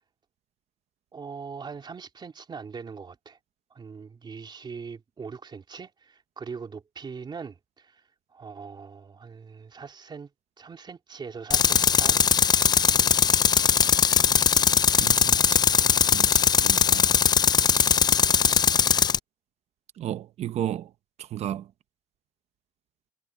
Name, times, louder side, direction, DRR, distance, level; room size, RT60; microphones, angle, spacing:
voice 1, 1.1-3.4 3.7-8.0 8.3-10.3 10.6-12.2, right 5 dB, 40° right, 3.2 m, -41 dB
Tools, 11.5-19.2, left 7 dB, 35° left, 0.4 m, -20 dB
voice 2, 15.0-17.2 20.0-20.9 21.2-21.7, right 11 dB, 70° right, 0.8 m, -34 dB
cardioid pair, 85°, 11 cm